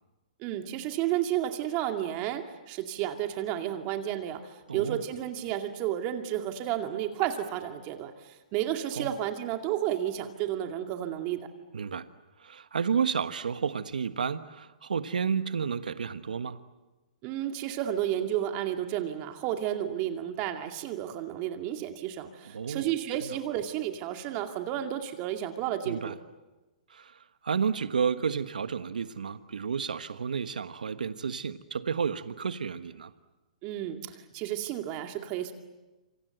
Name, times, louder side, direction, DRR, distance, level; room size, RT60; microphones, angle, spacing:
voice 1, 0.4-11.4 17.2-26.1 33.6-35.5, right 11 dB, 35° right, 5 dB, 2.3 m, -32 dB
voice 2, 4.7-5.0 9.0-9.2 11.7-12.1 12.4-16.6 22.4-22.9 25.8-26.1 26.9-33.1, right 6 dB, 85° right, 11 dB, 1.4 m, -31 dB
27.5 x 26.5 x 7.9 m, 1.1 s
hypercardioid pair, 135°, 4 cm